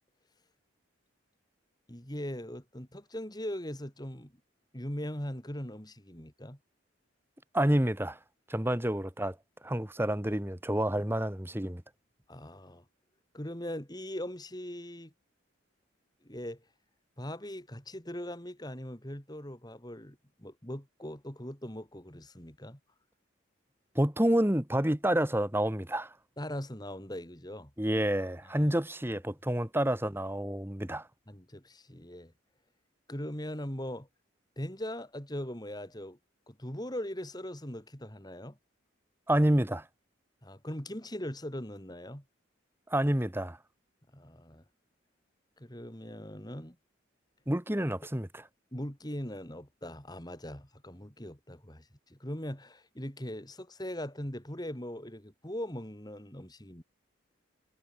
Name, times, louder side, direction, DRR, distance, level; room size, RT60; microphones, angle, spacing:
voice 1, 1.9-4.3 4.7-6.6 12.3-12.8 13.3-15.1 16.2-16.6 17.2-22.8 26.4-27.7 28.4-28.7 31.3-32.3 33.1-34.1 34.6-36.2 36.5-38.6 40.4-42.2 44.1-44.6 45.6-46.8 48.7-56.8, left 1 dB, 20° left, 3.5 m, -40 dB
voice 2, 7.5-8.2 8.5-9.3 9.6-11.8 23.9-26.1 27.8-31.0 39.3-39.8 42.9-43.6 47.5-48.4, right 1 dB, 10° right, 1.4 m, -28 dB
head